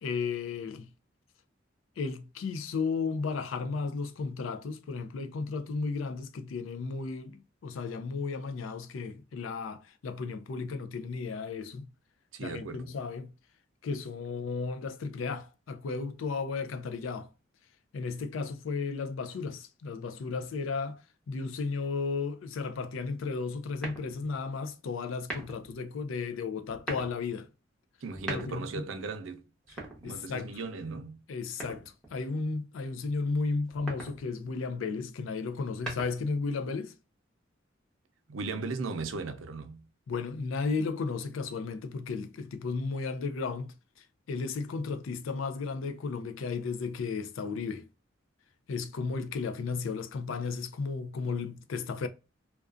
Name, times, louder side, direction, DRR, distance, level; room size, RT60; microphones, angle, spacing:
voice 1, 0.0-0.9 2.0-11.9 12.4-13.3 13.8-17.3 17.9-21.0 21.3-27.5 28.3-28.9 30.0-30.6 31.3-36.9 40.1-43.7 44.3-47.9 48.7-52.1, left 4 dB, 90° left, 0.4 m, -34 dB
voice 2, 12.3-12.9 28.0-29.4 29.8-31.2 38.3-39.8, right 4 dB, 90° right, 0.5 m, -37 dB
sound 1, 23.8-24.4 25.2-25.7 26.6-27.2 28.0-28.8 29.6-30.5 31.6-32.2 33.6-34.2 35.5-36.4, right 2 dB, 5° left, 0.8 m, -41 dB
2.4 x 2.3 x 2.3 m
head